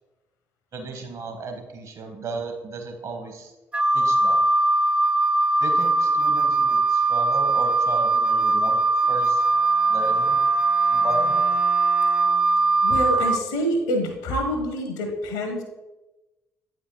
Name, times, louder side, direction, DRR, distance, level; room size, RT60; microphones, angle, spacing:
voice 1, 0.7-3.5 3.9-4.4 5.6-8.8 9.1-9.4 9.9-10.4 10.9-11.4, right 3 dB, 50° right, 4 dB, 1.4 m, -34 dB
Wind instrument woodwind instrument, 3.7-13.4, right 3 dB, 15° right, 0.3 m, -20 dB
Bowed string instrument, 9.0-13.1, right 4 dB, 80° right, 1.8 m, -42 dB
voice 2, 12.8-15.6, equal, 70° left, 4 dB, 1.0 m, -26 dB
8.5 x 4.9 x 3.2 m, 1.0 s
figure-of-eight pair, 40°, 8 cm